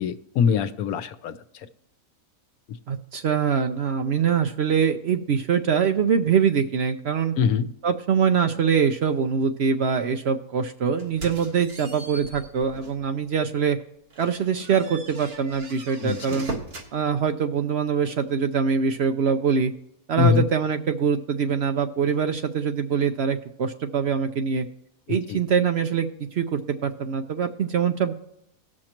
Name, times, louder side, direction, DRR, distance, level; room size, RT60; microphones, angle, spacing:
voice 1, 0.0-1.4 7.4-7.7 16.0-16.4 20.2-20.5 25.1-25.4, left 7 dB, 80° left, 12 dB, 1.2 m, -23 dB
voice 2, 2.9-7.3 7.8-13.8 14.2-16.5 16.9-19.7 20.1-24.7 25.1-28.1, right 6 dB, 60° right, 7 dB, 0.7 m, -23 dB
sound 1, 11.0-13.1 13.5-13.7 14.1-16.9, right 2 dB, 80° right, 2.0 m, -39 dB
18.5 x 6.4 x 2.9 m, 0.79 s
omnidirectional pair, 1.5 m